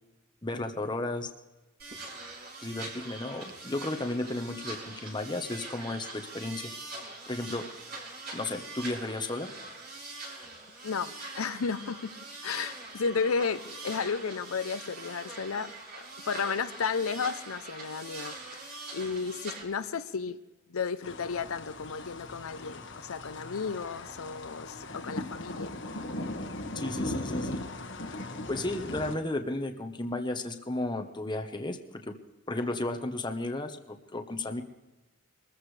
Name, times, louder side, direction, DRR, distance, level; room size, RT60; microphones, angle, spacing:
voice 1, 0.4-1.3 2.6-6.7 7.3-7.7 8.3-9.5 26.7-27.6 28.3-32.1 32.5-34.6, left 2 dB, 20° left, 5 dB, 1.1 m, -34 dB
sound 1, 1.8-19.6, right 2 dB, 45° right, 6.4 m, -43 dB
voice 2, 10.8-15.7 16.2-18.6 18.9-20.4 20.7-25.7, left 5 dB, 85° left, 11 dB, 0.7 m, -33 dB
sound 2, 21.0-29.2, left 1 dB, 60° left, 1.5 m, -38 dB
24.0 x 14.0 x 3.3 m, 1.1 s
head